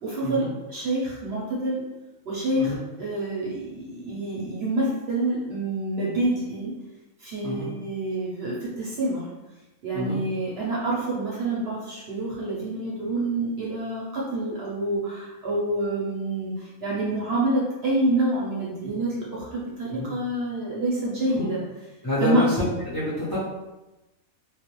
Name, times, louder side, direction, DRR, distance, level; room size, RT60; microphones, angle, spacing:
voice 1, 0.0-1.8 2.2-6.7 7.2-9.3 9.8-21.6 22.2-22.5, right 1 dB, 55° right, -6 dB, 0.7 m, -27 dB
voice 2, 22.0-23.4, left 1 dB, 30° left, -9 dB, 0.4 m, -28 dB
2.3 x 2.1 x 2.9 m, 1.0 s
omnidirectional pair, 1.5 m